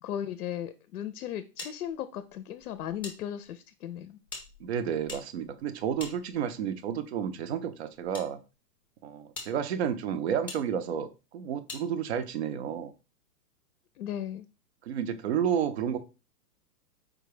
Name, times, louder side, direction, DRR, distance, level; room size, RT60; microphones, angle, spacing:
voice 1, 0.0-4.2 14.0-14.5, left 10 dB, 65° left, 0.6 m, -36 dB
sound 1, 1.6-3.2 3.4-3.5 4.3-6.7 7.5-8.3 8.8-8.9 9.3-9.5 10.5-10.6 11.7-11.8, left 3 dB, 5° left, 0.6 m, -44 dB
voice 2, 4.6-8.4 9.0-12.9 14.8-16.0, right 8 dB, 45° right, 0.5 m, -31 dB
4.7 x 2.2 x 4.8 m
hypercardioid pair, 160°, 48 cm